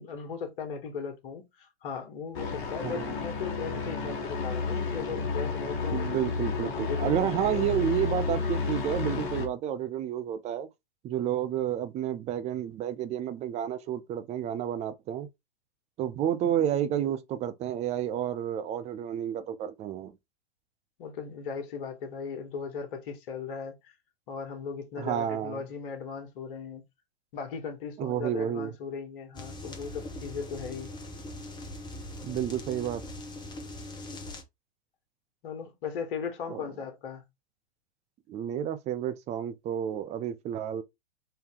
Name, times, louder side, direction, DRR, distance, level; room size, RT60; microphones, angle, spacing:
voice 1, 0.0-6.1 6.6-7.8 21.0-23.9 24.3-26.8 27.3-30.9 35.4-37.2, left 6 dB, 55° left, 1.4 m, -38 dB
sound 1, 2.3-9.5, left 4 dB, 35° left, 1.4 m, -31 dB
voice 2, 2.8-3.1 5.9-10.7 11.0-15.3 16.0-20.1 25.0-25.6 28.0-28.7 32.2-33.0 36.5-36.6 38.3-40.8, right 10 dB, 20° right, 0.5 m, -30 dB
sound 2, 29.3-34.4, left 1 dB, 15° left, 0.9 m, -41 dB
3.8 x 2.8 x 3.6 m
hypercardioid pair, 105°, 32 cm